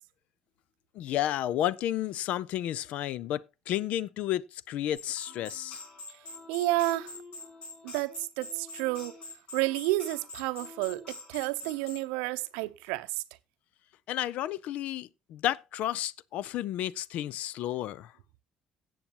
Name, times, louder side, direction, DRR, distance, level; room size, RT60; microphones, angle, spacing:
voice 1, 0.9-5.8 14.1-18.1, left 12 dB, 70° left, 0.5 m, -32 dB
sound 1, 4.9-12.1, left 3 dB, 55° left, 6.3 m, -45 dB
voice 2, 6.5-7.1 7.8-9.1 9.5-13.2, right 19 dB, 85° right, 0.6 m, -30 dB
17.0 x 7.1 x 2.9 m
hypercardioid pair, 60°, 2 cm